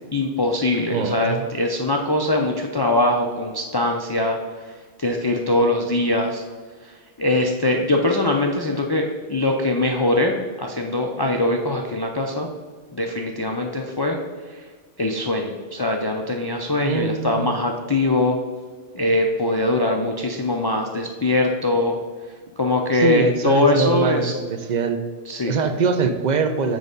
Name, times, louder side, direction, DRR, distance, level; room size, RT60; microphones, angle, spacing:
voice 1, 0.1-4.4 5.0-6.4 7.2-12.5 12.9-14.2 14.5-14.6 15.0-18.4 18.9-22.0 22.6-24.3 25.3-25.6, left 2 dB, 40° left, 1 dB, 0.3 m, -22 dB
voice 2, 0.9-1.5 16.8-17.6 23.0-25.0 25.4-26.8, right 5 dB, 50° right, 7 dB, 0.6 m, -23 dB
6.2 x 4.1 x 5.2 m, 1.5 s
omnidirectional pair, 1.1 m